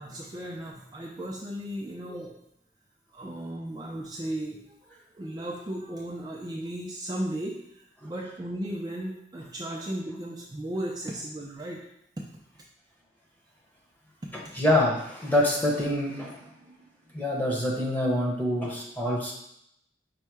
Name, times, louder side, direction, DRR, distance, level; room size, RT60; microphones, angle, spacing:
voice 1, 0.0-2.4 3.1-11.9, right 1 dB, 20° right, -2 dB, 0.4 m, -36 dB
voice 2, 14.5-16.5 17.1-19.3, left 1 dB, 10° left, -3 dB, 0.9 m, -26 dB
5.5 x 2.1 x 4.6 m, 0.76 s
head